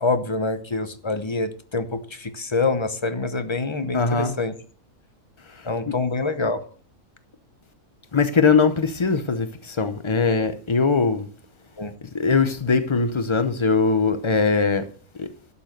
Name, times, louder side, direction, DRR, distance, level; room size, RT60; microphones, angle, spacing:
voice 1, 0.0-4.5 5.6-6.6 11.8-11.9, left 3 dB, 25° left, 0.8 m, -26 dB
voice 2, 3.9-4.3 5.5-5.9 8.1-11.3 12.1-14.8 15.2-15.3, left 4 dB, 45° left, 0.3 m, -21 dB
12.0 x 7.0 x 6.5 m
omnidirectional pair, 1.6 m